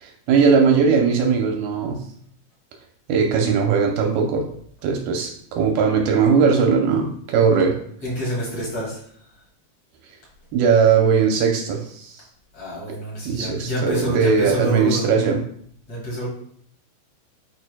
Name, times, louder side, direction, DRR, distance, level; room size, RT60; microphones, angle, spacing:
voice 1, 0.0-2.0 3.1-4.5 4.8-7.8 10.5-12.2 13.3-15.4, right 5 dB, 80° right, 2 dB, 2.3 m, -19 dB
voice 2, 8.0-9.0 12.5-15.1 15.9-16.3, equal, 40° left, -6 dB, 3.4 m, -27 dB
10.5 x 4.6 x 2.2 m, 0.63 s
omnidirectional pair, 5.0 m